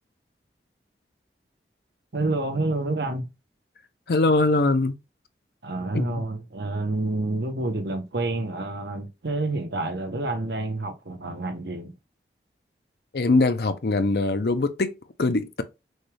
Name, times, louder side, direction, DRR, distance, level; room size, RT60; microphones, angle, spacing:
voice 1, 2.1-3.3 5.6-11.9, right 2 dB, 70° right, 0.9 m, -28 dB
voice 2, 4.1-5.0 5.9-6.2 13.1-15.6, left 2 dB, 60° left, 0.6 m, -22 dB
6.3 x 2.3 x 3.3 m
head